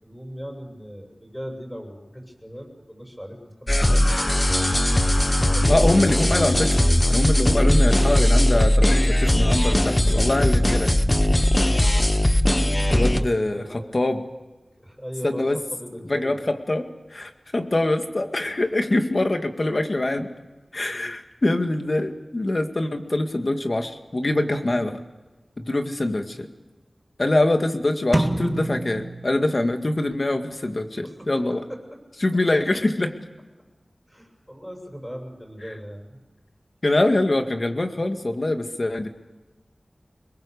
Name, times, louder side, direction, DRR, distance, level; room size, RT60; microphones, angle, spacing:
voice 1, 0.0-4.3 5.5-6.0 7.4-7.8 13.0-13.3 13.5-14.0 14.8-16.5 20.8-21.1 31.0-31.2 31.7-31.8 34.1-36.2, equal, 5° left, 1 dB, 7.6 m, -38 dB
sound 1, 3.7-13.2, left 1 dB, 20° left, 1.0 m, -19 dB
voice 2, 5.7-6.8 7.1-11.0 12.9-14.2 15.2-15.6 16.1-20.3 20.7-25.0 25.6-26.5 27.2-31.6 32.2-33.1 36.8-39.1, left 2 dB, 45° left, 6 dB, 2.0 m, -24 dB
sound 2, 28.1-30.0, right 1 dB, 15° right, 2.0 m, -27 dB
25.0 x 21.5 x 6.8 m, 1.2 s
wide cardioid pair, 75°, 0 cm